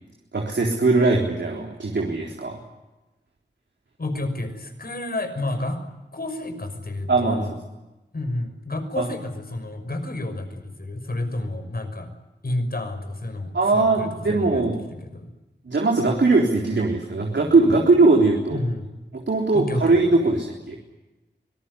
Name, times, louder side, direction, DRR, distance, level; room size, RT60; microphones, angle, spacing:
voice 1, 0.3-2.6 7.1-7.5 9.0-9.1 13.5-14.8 15.7-18.6 19.1-20.8, right 3 dB, 75° right, 0 dB, 3.9 m, -20 dB
voice 2, 4.0-5.8 6.1-7.5 8.1-12.1 12.4-14.7 15.0-15.3 18.5-18.9 19.5-20.0, left 2 dB, 55° left, 7 dB, 6.1 m, -30 dB
25.0 x 19.0 x 9.8 m, 1.1 s
wide cardioid pair, 55°, 18 cm